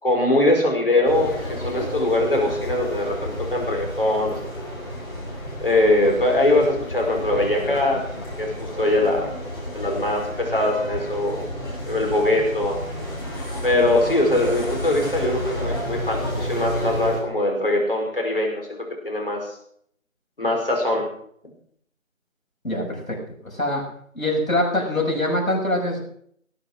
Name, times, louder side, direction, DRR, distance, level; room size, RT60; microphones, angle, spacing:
voice 1, 0.0-4.4 5.6-8.0 8.4-9.3 9.7-11.4 11.9-12.8 13.6-18.8 19.0-19.4 20.4-21.0, left 1 dB, 40° left, 1 dB, 5.1 m, -22 dB
sound 1, 1.0-17.2, equal, 20° left, 4.9 m, -31 dB
voice 2, 22.6-23.2 23.4-23.9 24.2-26.0, left 1 dB, 85° left, 0 dB, 6.8 m, -23 dB
19.0 x 8.8 x 6.3 m, 0.64 s
figure-of-eight pair, 170°, 40 cm